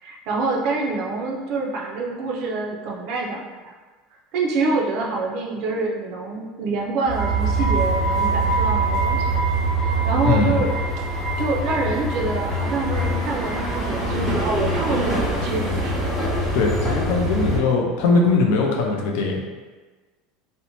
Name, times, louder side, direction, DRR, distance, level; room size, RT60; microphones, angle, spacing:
voice 1, 0.0-3.7 4.3-9.4 10.0-10.7 11.4-16.1, right 3 dB, 50° right, -1 dB, 0.4 m, -26 dB
sound 1, 7.1-17.6, right 2 dB, 5° left, 0.6 m, -23 dB
voice 2, 10.2-10.5 16.5-19.4, left 4 dB, 60° left, 0 dB, 0.4 m, -20 dB
2.6 x 2.0 x 2.9 m, 1.3 s
cardioid pair, 170°, 0 cm